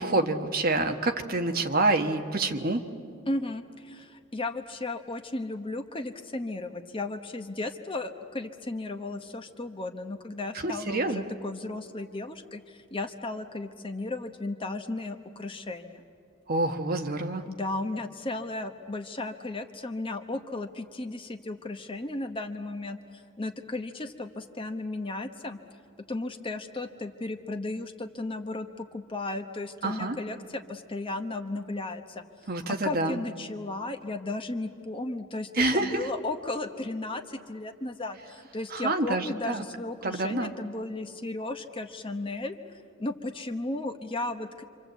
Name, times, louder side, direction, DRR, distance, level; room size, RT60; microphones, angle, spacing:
voice 1, 0.0-2.8 10.6-11.2 16.5-17.4 29.8-30.2 32.5-33.2 35.5-36.1 38.7-39.6 40.0-40.5, right 2 dB, 45° right, 5 dB, 1.4 m, -27 dB
voice 2, 3.3-16.0 17.5-25.6 26.1-32.2 32.7-42.6 43.0-44.6, left 2 dB, 25° left, 6 dB, 1.0 m, -35 dB
27.0 x 26.0 x 8.2 m, 2.4 s
head